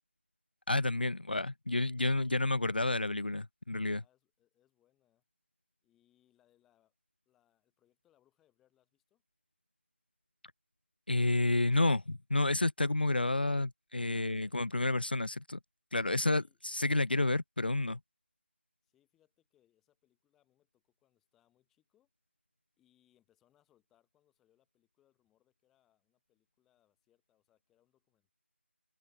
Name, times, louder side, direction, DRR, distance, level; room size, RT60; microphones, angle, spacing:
voice 1, 0.7-4.0 11.1-15.6 15.9-18.0, left 2 dB, 50° left, 0.7 m, -30 dB
voice 2, 3.9-5.2 5.8-6.9 7.3-9.2 14.0-15.1 16.2-16.6 18.8-22.1 22.8-28.3, left 12 dB, ahead, 2.0 m, -75 dB
open air
figure-of-eight pair, 180°, 7 cm